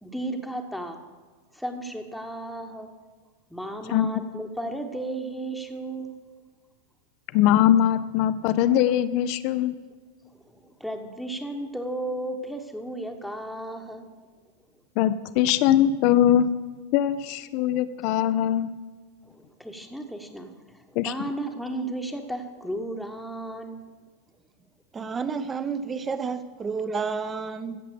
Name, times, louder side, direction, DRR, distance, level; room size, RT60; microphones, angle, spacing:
voice 1, 0.0-1.0 1.5-2.9 3.5-6.2 8.6-8.7 10.3-14.1 19.3-23.8, right 1 dB, ahead, 1.2 m, -34 dB
voice 2, 7.3-9.7 15.0-16.5 16.9-18.7 21.0-21.1, left 11 dB, 45° left, 0.6 m, -21 dB
voice 3, 24.9-27.8, right 5 dB, 20° right, 0.8 m, -30 dB
15.5 x 7.6 x 6.9 m
figure-of-eight pair, 90°, 0 cm